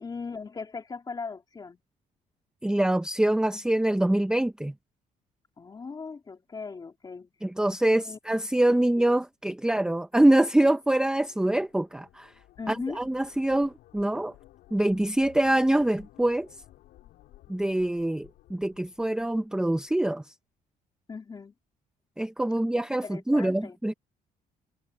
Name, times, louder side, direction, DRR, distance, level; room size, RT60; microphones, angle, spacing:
voice 1, 0.0-1.8 5.6-7.3 7.8-8.2 12.6-13.0 21.1-21.5 23.0-23.7, left 4 dB, 25° left, 2.8 m, -38 dB
voice 2, 2.6-4.7 7.4-12.3 12.7-14.3 14.7-16.5 17.5-20.3 22.2-23.9, right 1 dB, 5° right, 0.8 m, -25 dB
sound 1, 10.9-19.9, left 15 dB, 90° left, 4.8 m, -56 dB
cardioid pair, 120°, 15 cm